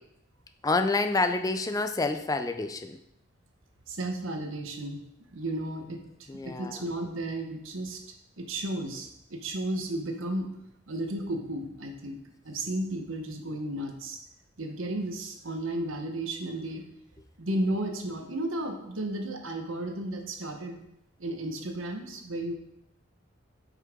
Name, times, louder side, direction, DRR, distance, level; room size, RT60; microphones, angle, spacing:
voice 1, 0.6-3.0 6.3-6.7, left 3 dB, 20° left, 8 dB, 0.4 m, -28 dB
voice 2, 3.9-8.0 8.4-10.5 10.9-12.2 12.4-14.2 14.6-16.8 17.4-20.8 21.2-22.5, right 1 dB, 85° right, 4 dB, 1.1 m, -33 dB
8.2 x 5.6 x 3.6 m, 0.79 s
head